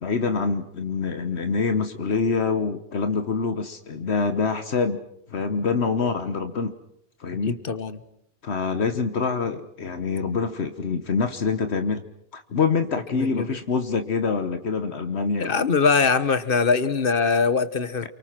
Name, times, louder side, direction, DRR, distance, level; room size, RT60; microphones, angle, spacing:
voice 1, 0.0-5.0 5.3-6.7 7.2-7.6 8.4-12.0 12.3-15.6 18.0-18.1, left 5 dB, 75° left, 9 dB, 1.4 m, -25 dB
voice 2, 7.6-8.0 13.2-13.5 15.4-18.1, left 5 dB, 55° left, 14 dB, 1.4 m, -22 dB
29.0 x 24.0 x 6.0 m, 0.74 s
omnidirectional pair, 1.1 m